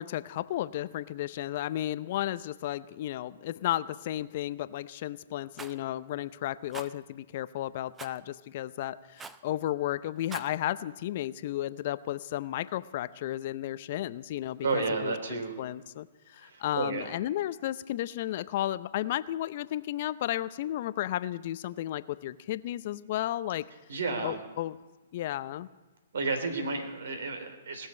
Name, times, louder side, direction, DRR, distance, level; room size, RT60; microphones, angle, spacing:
voice 1, 0.0-16.1 16.3-23.7 24.2-24.8 25.1-25.7, left 13 dB, 50° left, 16 dB, 0.6 m, -33 dB
Rattle, 5.6-5.8 6.7-6.9 8.0-8.2 9.2-9.5 10.2-10.5, right 5 dB, 15° right, 0.7 m, -43 dB
voice 2, 14.6-15.6 16.4-17.1 23.9-24.4 26.1-27.9, right 4 dB, 70° right, 6 dB, 3.3 m, -32 dB
19.0 x 7.4 x 9.7 m, 1.2 s
hypercardioid pair, 125°, 0 cm